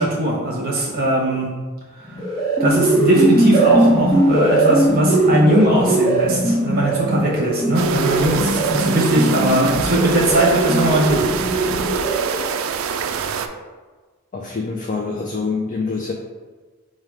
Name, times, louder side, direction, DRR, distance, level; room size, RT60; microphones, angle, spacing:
voice 1, 0.0-1.5 2.1-2.2 2.6-11.3, right 1 dB, 45° right, -4 dB, 0.9 m, -19 dB
sound 1, 2.0-12.6, right 1 dB, 20° left, 1.2 m, -19 dB
sound 2, 7.7-13.5, right 6 dB, 65° right, 0.3 m, -25 dB
voice 2, 14.3-16.1, left 4 dB, 35° left, 1 dB, 0.4 m, -25 dB
4.9 x 2.2 x 4.6 m, 1.4 s
head